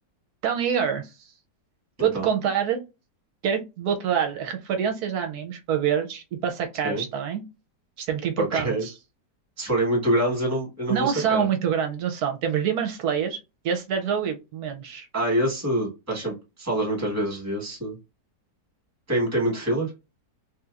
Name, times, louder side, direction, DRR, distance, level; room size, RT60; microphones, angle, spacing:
voice 1, 0.4-1.1 2.0-2.8 3.4-7.4 8.0-8.9 10.9-13.4 13.6-15.1, right 8 dB, 70° right, 5 dB, 1.0 m, -26 dB
voice 2, 8.4-8.9 9.6-11.5 15.1-17.9 19.1-19.9, right 1 dB, 10° right, -1 dB, 1.2 m, -26 dB
3.2 x 2.9 x 2.4 m, 0.26 s
omnidirectional pair, 1.9 m